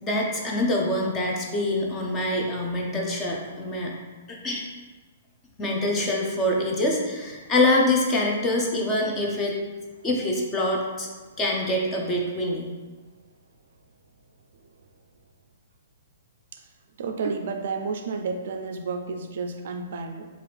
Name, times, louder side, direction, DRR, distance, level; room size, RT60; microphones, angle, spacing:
voice 1, 0.0-4.0 4.3-4.7 5.6-9.5 10.0-11.1 11.4-12.7, left 1 dB, 15° left, -1 dB, 0.5 m, -25 dB
voice 2, 17.0-20.3, right 4 dB, 55° right, 5 dB, 0.3 m, -31 dB
4.2 x 2.4 x 3.2 m, 1.3 s
hypercardioid pair, 165°, 0 cm